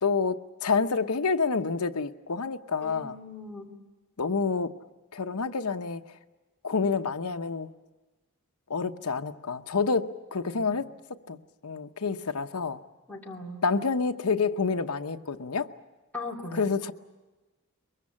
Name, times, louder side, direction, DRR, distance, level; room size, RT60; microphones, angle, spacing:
voice 1, 0.0-3.2 4.2-4.7 5.1-6.1 6.6-7.7 8.7-12.8 13.6-15.7 16.5-16.9, left 4 dB, 80° left, 0.9 m, -28 dB
voice 2, 2.8-3.7 13.1-13.6 16.1-16.6, left 3 dB, 10° left, 2.6 m, -39 dB
23.0 x 22.0 x 8.6 m
head